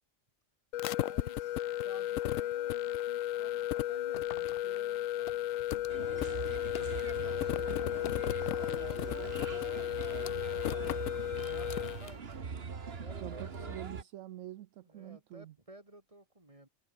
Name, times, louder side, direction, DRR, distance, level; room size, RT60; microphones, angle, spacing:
sound 1, 0.7-12.1, left 13 dB, 75° left, 1.0 m, -34 dB
voice 1, 0.9-5.5 6.1-9.8 10.2-12.4 13.0-13.8 14.8-16.7, right 1 dB, 25° right, 4.2 m, -54 dB
sound 2, 4.1-7.2 7.5-8.8 9.1-9.2 9.6-12.4, left 9 dB, 55° left, 0.8 m, -48 dB
Bird, 5.9-14.0, right 5 dB, 50° right, 1.6 m, -42 dB
voice 2, 13.2-15.5, right 13 dB, 75° right, 1.0 m, -46 dB
omnidirectional pair, 1.4 m